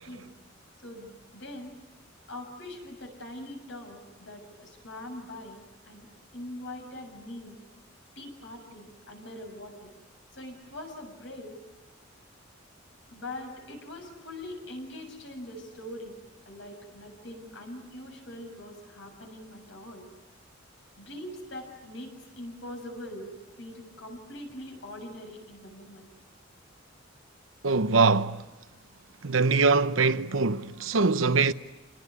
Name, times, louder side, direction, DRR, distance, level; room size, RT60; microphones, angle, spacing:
voice 1, 0.8-1.7 2.3-6.1 6.3-7.6 8.2-9.9 10.3-11.6 13.1-16.2 16.5-20.1 21.0-23.3 23.6-26.1, left 1 dB, 65° left, 7.1 m, -42 dB
voice 2, 27.6-28.4 29.2-31.5, right 4 dB, 85° right, 0.9 m, -23 dB
29.0 x 20.0 x 9.7 m
head